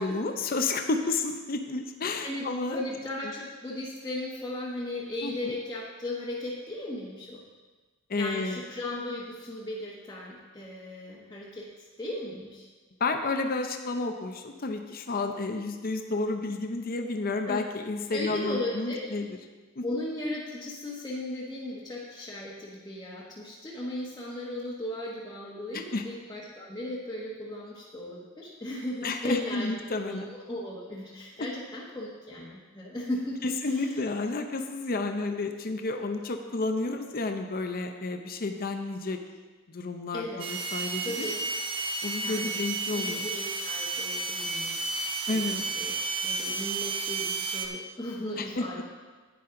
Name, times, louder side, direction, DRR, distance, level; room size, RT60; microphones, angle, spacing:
voice 1, 0.0-2.8 5.2-5.5 8.1-8.6 13.0-19.3 19.8-19.9 25.7-26.0 29.0-30.3 33.4-39.2 39.7-41.3 42.0-43.3 45.3-45.6 48.4-48.6, left 3 dB, 45° left, 5 dB, 0.6 m, -31 dB
voice 2, 2.2-7.4 8.2-12.7 17.5-17.6 18.1-19.1 19.8-34.0 40.1-40.4 41.0-41.4 42.2-42.5 42.9-44.8 45.3-45.9 46.2-48.8, left 1 dB, 15° left, -7 dB, 1.1 m, -36 dB
sound 1, 40.4-47.7, right 3 dB, 25° right, 0.7 m, -32 dB
10.0 x 9.3 x 3.8 m, 1.3 s
head